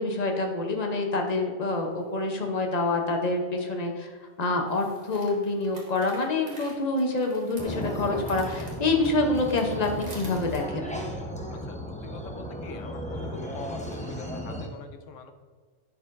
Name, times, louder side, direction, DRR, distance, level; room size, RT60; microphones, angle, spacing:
voice 1, 0.0-4.1 4.4-10.9, left 2 dB, 40° left, 3 dB, 0.7 m, -27 dB
sound 1, 1.9-2.0 4.6-10.6, right 1 dB, 35° right, 1.3 m, -49 dB
sound 2, 7.6-14.7, equal, 10° left, 0.4 m, -35 dB
voice 2, 12.0-15.3, left 4 dB, 75° left, 8 dB, 0.9 m, -44 dB
10.5 x 4.5 x 2.5 m, 1.5 s
omnidirectional pair, 1.4 m